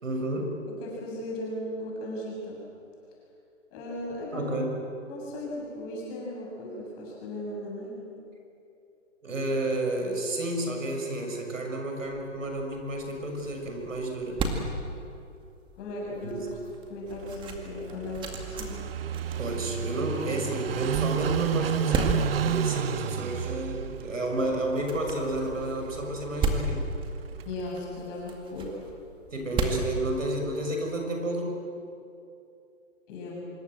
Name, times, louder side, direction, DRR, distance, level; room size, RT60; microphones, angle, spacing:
voice 1, 0.0-0.5 4.3-4.8 9.2-14.4 16.2-16.4 19.4-26.8 29.3-31.6, right 1 dB, 85° right, 2 dB, 6.7 m, -31 dB
voice 2, 0.7-2.6 3.7-4.6 5.1-8.1 15.7-16.4 16.9-18.8 21.9-22.0 27.4-28.7 33.1-33.4, left 1 dB, 25° left, -4 dB, 7.3 m, -37 dB
sound 1, 12.1-30.8, right 3 dB, 10° right, 2.1 m, -36 dB
Car passing by / Idling, 17.1-27.8, right 9 dB, 50° right, 0.9 m, -32 dB
25.5 x 23.0 x 7.8 m, 2.6 s
hypercardioid pair, 150°, 38 cm